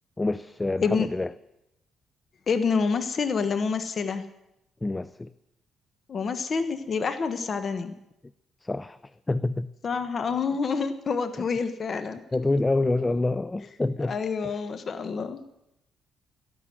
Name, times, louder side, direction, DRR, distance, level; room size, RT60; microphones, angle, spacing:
voice 1, 0.2-1.3 4.8-5.3 8.6-9.0 9.3-9.7 12.3-14.2 14.4-14.6, left 2 dB, 20° left, 16 dB, 0.4 m, -27 dB
voice 2, 2.5-4.2 6.1-8.0 9.8-12.2 14.1-15.4, left 5 dB, 45° left, 9 dB, 1.2 m, -27 dB
13.5 x 11.5 x 7.9 m, 0.86 s
cardioid pair, 90°, 0 cm